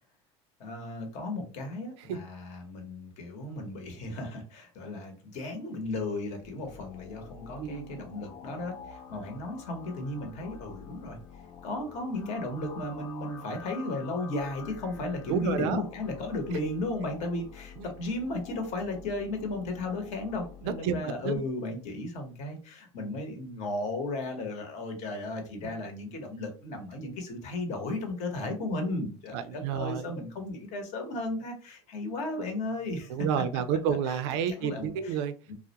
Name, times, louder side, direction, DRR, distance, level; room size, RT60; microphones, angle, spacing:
voice 1, 0.6-11.2 11.6-33.1 34.1-34.2 34.5-35.2 35.5-35.6, left 2 dB, 55° left, 3 dB, 0.9 m, -35 dB
sound 1, 6.4-21.4, left 6 dB, 80° left, 0.6 m, -48 dB
voice 2, 7.6-8.0 15.3-15.8 17.8-17.9 20.6-21.4 29.3-30.1 33.1-35.3, right 7 dB, 75° right, 11 dB, 0.4 m, -30 dB
2.3 x 2.1 x 2.8 m, 0.37 s
supercardioid pair, 115°, 14 cm